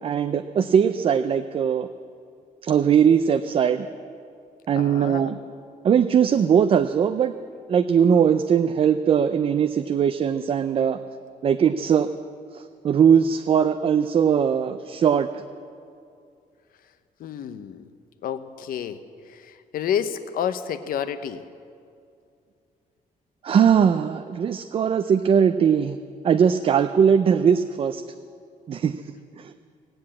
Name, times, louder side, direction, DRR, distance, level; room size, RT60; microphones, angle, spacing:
voice 1, 0.0-1.9 2.6-3.9 4.7-5.3 5.8-7.3 7.7-11.0 11.4-12.1 12.5-15.3 23.4-26.0 26.2-28.0 28.7-29.0 29.4-29.5, right 7 dB, 40° right, 9 dB, 0.4 m, -20 dB
voice 2, 4.8-5.3 17.2-17.9 18.2-21.4, left 9 dB, 75° left, 11 dB, 0.8 m, -30 dB
18.0 x 7.9 x 8.6 m, 2.4 s
cardioid pair, 165°, 15 cm